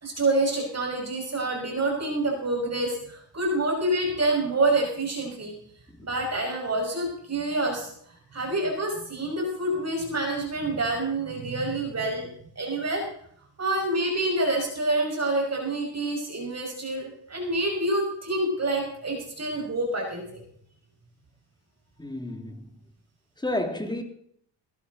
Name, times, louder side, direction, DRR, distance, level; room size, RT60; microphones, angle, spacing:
voice 1, 0.0-5.5 6.0-7.9 8.3-12.3 12.6-13.0 13.6-20.4, right 2 dB, 35° right, 5.7 m, -27 dB
voice 2, 22.0-22.7 23.4-24.0, left 1 dB, 10° left, 2.6 m, -31 dB
18.0 x 13.0 x 4.0 m
cardioid pair, 100°, 44 cm